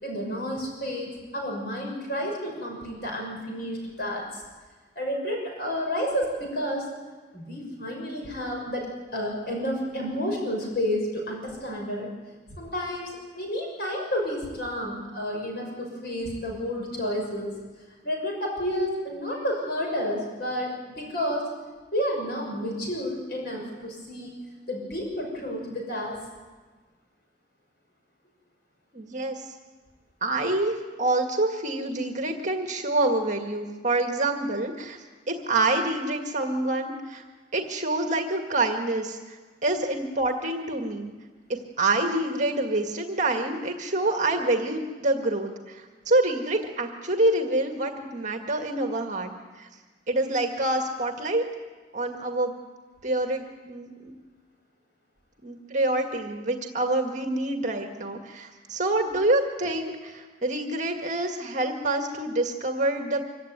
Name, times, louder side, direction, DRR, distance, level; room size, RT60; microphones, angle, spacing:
voice 1, 0.0-4.4 4.9-6.9 7.3-12.1 12.5-17.5 18.0-21.4 21.9-24.3 24.7-26.2, equal, 60° left, 0 dB, 6.2 m, -30 dB
voice 2, 28.9-29.4 30.2-35.0 35.3-37.2 37.5-41.1 41.5-49.7 50.1-51.5 51.9-52.5 53.0-54.1 55.4-63.2, right 2 dB, 45° right, 3 dB, 1.9 m, -27 dB
25.0 x 16.0 x 9.5 m, 1.3 s
head